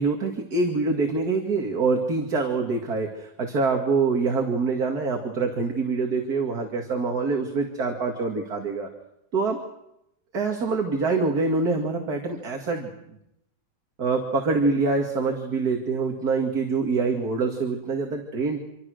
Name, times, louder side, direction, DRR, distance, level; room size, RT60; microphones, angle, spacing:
voice 1, 0.0-8.9 9.3-9.6 10.3-13.2 14.0-18.6, right 4 dB, 55° right, 2 dB, 2.8 m, -25 dB
27.0 x 25.5 x 6.5 m, 0.82 s
omnidirectional pair, 1.9 m